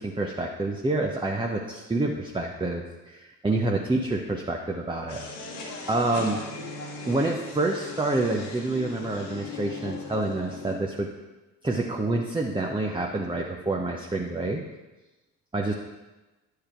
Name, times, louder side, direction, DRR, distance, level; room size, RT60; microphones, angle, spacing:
voice 1, 0.0-5.2 5.9-6.4 7.1-11.1 11.6-14.6 15.5-15.7, right 2 dB, 10° right, 1 dB, 0.9 m, -27 dB
sound 1, 5.1-10.8, left 3 dB, 70° left, 1.7 m, -39 dB
10.0 x 6.7 x 4.5 m, 1.1 s
figure-of-eight pair, 50°, 49 cm